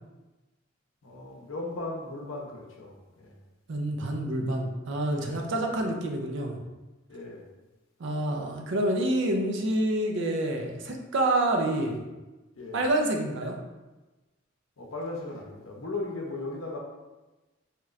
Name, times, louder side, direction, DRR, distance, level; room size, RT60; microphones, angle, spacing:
voice 1, 1.0-3.3 5.1-5.9 7.1-7.4 12.5-12.8 14.8-16.8, left 2 dB, 85° left, -1 dB, 0.7 m, -37 dB
voice 2, 3.7-6.6 8.0-12.0 12.7-13.6, right 1 dB, 65° right, 2 dB, 0.5 m, -27 dB
3.1 x 2.9 x 2.4 m, 1.1 s
head